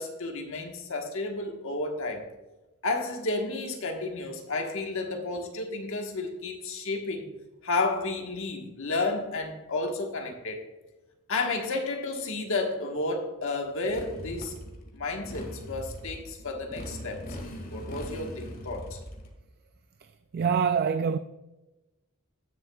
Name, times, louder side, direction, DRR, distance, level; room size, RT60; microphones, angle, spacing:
voice 1, 0.0-2.2 2.8-7.3 7.6-10.7 11.3-14.6 14.9-17.2 17.7-19.0, left 3 dB, 65° left, 1.4 m, -32 dB
Motorcycle, 13.9-19.3, equal, 40° left, 1.7 m, -40 dB
voice 2, 20.3-21.2, right 6 dB, 45° right, 0.3 m, -24 dB
17.5 x 6.8 x 2.4 m
head